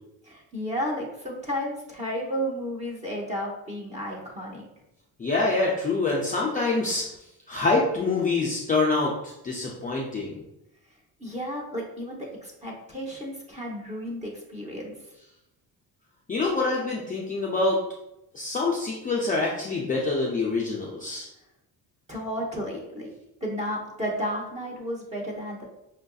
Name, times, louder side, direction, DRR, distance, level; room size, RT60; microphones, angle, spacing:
voice 1, 0.2-4.7 11.2-14.9 22.1-23.1 23.4-25.6, equal, 15° right, -2 dB, 0.8 m, -32 dB
voice 2, 5.2-7.0 7.5-10.4 16.3-17.8 18.3-21.3, left 3 dB, 20° left, -3 dB, 0.4 m, -25 dB
5.6 x 2.5 x 2.3 m, 0.88 s
cardioid pair, 155°, 40 cm